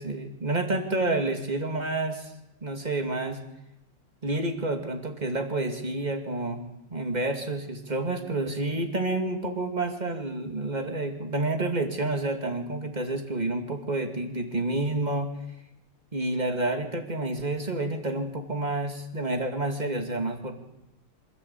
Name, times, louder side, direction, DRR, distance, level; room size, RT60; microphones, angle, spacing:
voice 1, 0.0-2.3 2.6-3.4 4.2-6.6 6.9-15.3 16.1-20.5, right 2 dB, 20° right, 5 dB, 2.2 m, -29 dB
25.0 x 13.0 x 8.3 m, 0.88 s
omnidirectional pair, 2.4 m